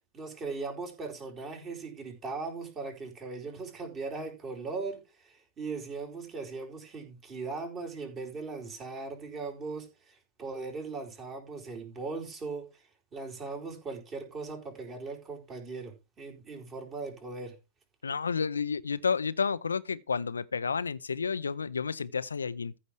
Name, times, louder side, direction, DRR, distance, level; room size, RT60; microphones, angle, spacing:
voice 1, 0.1-12.8 13.1-17.5, right 4 dB, 25° right, 4.8 m, -39 dB
voice 2, 18.0-22.7, left 5 dB, 80° left, 0.7 m, -31 dB
14.5 x 5.3 x 4.6 m
figure-of-eight pair, 100°, 0 cm